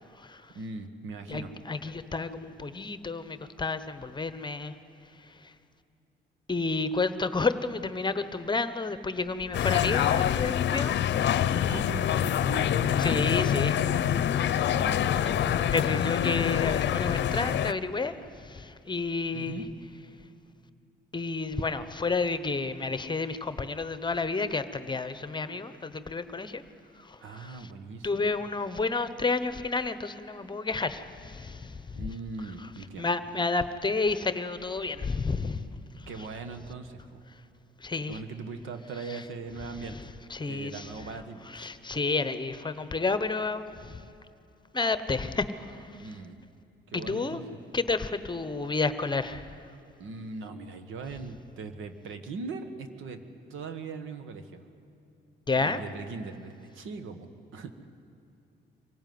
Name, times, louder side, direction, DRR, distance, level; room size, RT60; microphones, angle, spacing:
voice 1, 0.5-1.6 11.7-13.0 14.7-16.2 19.3-19.7 27.2-28.5 31.9-33.2 36.1-37.2 38.1-40.0 40.4-41.7 46.0-46.4 46.9-47.4 50.0-53.2 53.5-54.6 55.5-57.7, right 4 dB, 80° right, 8 dB, 1.6 m, -40 dB
voice 2, 1.3-4.7 6.5-11.5 13.0-13.8 15.7-18.1 18.4-19.6 21.1-26.6 27.1-27.6 28.0-32.0 33.0-35.6 37.8-38.2 39.1-39.2 40.3-40.9 41.5-44.0 44.7-45.8 46.9-47.4 47.7-49.6 55.5-55.8, left 3 dB, 20° left, 12 dB, 1.0 m, -30 dB
sound 1, 9.5-17.7, left 10 dB, 65° left, 0.7 m, -26 dB
24.5 x 16.0 x 9.5 m, 2.6 s
cardioid pair, 90°, 20 cm